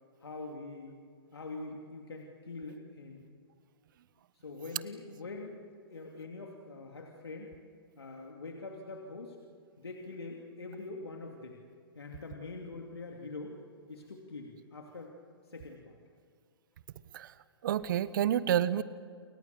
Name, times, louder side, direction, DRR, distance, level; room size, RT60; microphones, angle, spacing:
voice 1, 0.2-1.0 1.3-3.3 4.4-5.6 5.9-7.5 8.0-9.4 9.8-11.6 11.9-13.6 13.9-15.2 15.5-16.0, left 3 dB, 90° left, 1 dB, 2.8 m, -44 dB
voice 2, 17.6-18.8, right 10 dB, 55° right, 16 dB, 1.1 m, -29 dB
29.0 x 24.0 x 6.9 m, 2.1 s
hypercardioid pair, 130°, 13 cm